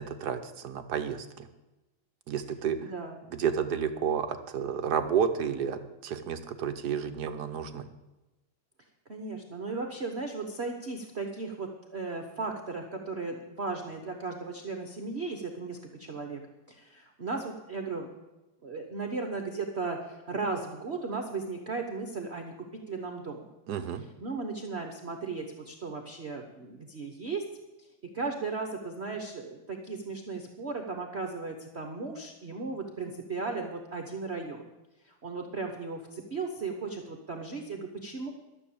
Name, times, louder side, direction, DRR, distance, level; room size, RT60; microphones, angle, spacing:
voice 1, 0.0-1.5 2.3-2.8 3.3-7.9 23.7-24.0, right 7 dB, 60° right, 8 dB, 1.2 m, -31 dB
voice 2, 2.8-3.2 9.1-16.4 16.7-18.1 18.6-22.5 22.9-23.5 24.0-27.4 27.8-27.9 28.1-34.6 35.0-38.3, right 4 dB, 40° right, 3 dB, 1.0 m, -36 dB
13.0 x 7.0 x 8.6 m, 1.1 s
omnidirectional pair, 2.2 m